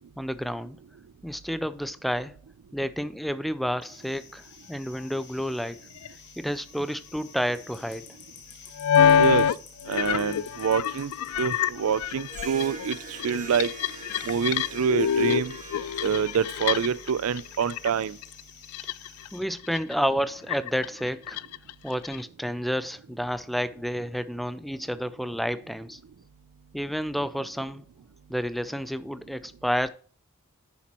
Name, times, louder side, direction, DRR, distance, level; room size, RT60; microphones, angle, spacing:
voice 1, 0.2-0.8 1.2-2.3 2.7-5.8 6.4-8.0 19.3-21.4 21.8-26.0 26.7-27.8 28.3-29.9, equal, ahead, 0.3 m, -30 dB
sound 1, 3.8-19.4, left 6 dB, 50° left, 1.8 m, -50 dB
sound 2, 6.0-6.1 8.8-9.6 9.8-17.1 17.4-17.9 18.2-19.3 19.6-19.9 20.5-22.2, left 8 dB, 80° left, 0.3 m, -26 dB
voice 2, 9.9-11.1 11.4-13.7 14.2-15.6 16.0-18.2, right 7 dB, 70° right, 0.4 m, -26 dB
Harp, 12.2-17.9, right 4 dB, 35° right, 1.5 m, -44 dB
10.5 x 7.2 x 3.0 m
head